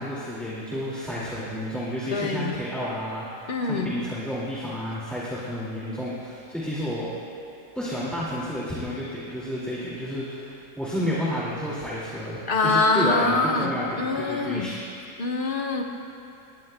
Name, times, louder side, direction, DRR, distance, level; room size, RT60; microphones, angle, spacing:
voice 1, 0.0-7.1 7.7-14.7, equal, ahead, -8 dB, 2.0 m, -31 dB
voice 2, 2.1-2.5 3.5-4.0 12.5-13.7 14.0-14.7 15.2-15.8, left 3 dB, 45° left, 2 dB, 1.1 m, -24 dB
20.5 x 20.5 x 2.2 m, 2.7 s
omnidirectional pair, 1.4 m